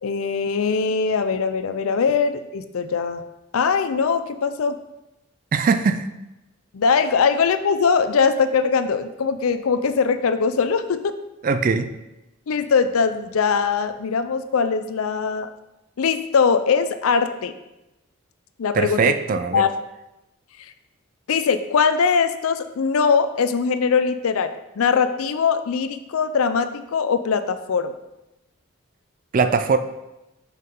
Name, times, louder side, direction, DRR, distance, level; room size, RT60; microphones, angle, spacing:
voice 1, 0.0-3.2 3.5-4.8 6.7-11.1 12.5-15.5 16.0-17.5 18.6-19.0 19.5-19.7 21.3-24.5 24.8-27.9, left 5 dB, 80° left, 11 dB, 0.4 m, -21 dB
voice 2, 5.5-6.1 11.4-11.9 18.7-19.6 29.3-29.8, right 5 dB, 40° right, 10 dB, 0.3 m, -20 dB
5.8 x 5.5 x 3.7 m, 0.96 s
head